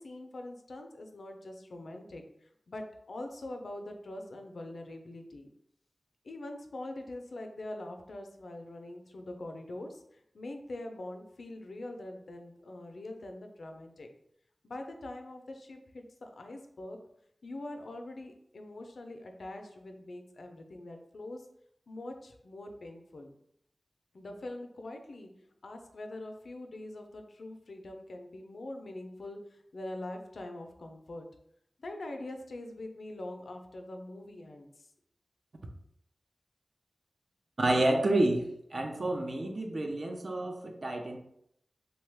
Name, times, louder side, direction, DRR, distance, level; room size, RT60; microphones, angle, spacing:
voice 1, 0.0-5.5 6.2-14.1 14.6-17.0 17.4-21.5 21.9-23.3 24.1-25.3 25.6-31.3 31.8-34.9, left 1 dB, 80° left, 4 dB, 0.4 m, -43 dB
voice 2, 37.6-38.4 38.7-41.2, right 1 dB, 60° right, 3 dB, 0.5 m, -29 dB
2.9 x 2.2 x 3.3 m, 0.73 s
cardioid pair, 40°, 0 cm